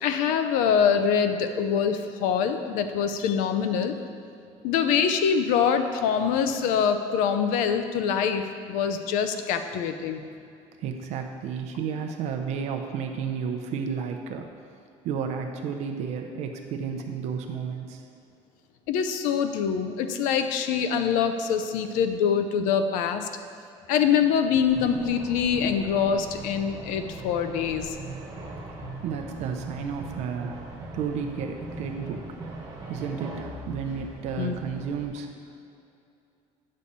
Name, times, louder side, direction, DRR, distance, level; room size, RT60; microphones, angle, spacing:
voice 1, 0.0-3.9 4.6-8.4 8.7-10.2 18.9-23.3 23.9-28.0 34.4-34.5, left 7 dB, 85° left, 8 dB, 0.6 m, -24 dB
voice 2, 10.8-14.5 15.0-18.1 29.0-30.6 30.9-32.6 32.9-35.3, right 6 dB, 60° right, 5 dB, 0.6 m, -32 dB
sound 1, 24.6-35.0, right 2 dB, 25° right, 1.6 m, -40 dB
9.6 x 6.4 x 4.2 m, 2.6 s
cardioid pair, 165°, 13 cm